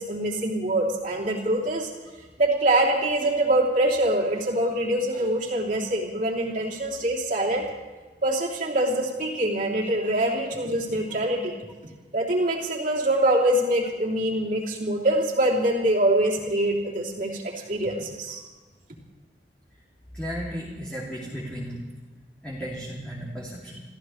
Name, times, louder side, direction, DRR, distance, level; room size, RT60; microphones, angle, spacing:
voice 1, 0.0-1.9 2.4-7.7 8.2-11.5 12.1-18.4, right 1 dB, 50° right, -2 dB, 3.2 m, -24 dB
voice 2, 20.1-21.8 22.4-23.8, equal, 5° left, -6 dB, 2.6 m, -34 dB
29.0 x 14.5 x 3.3 m, 1.3 s
head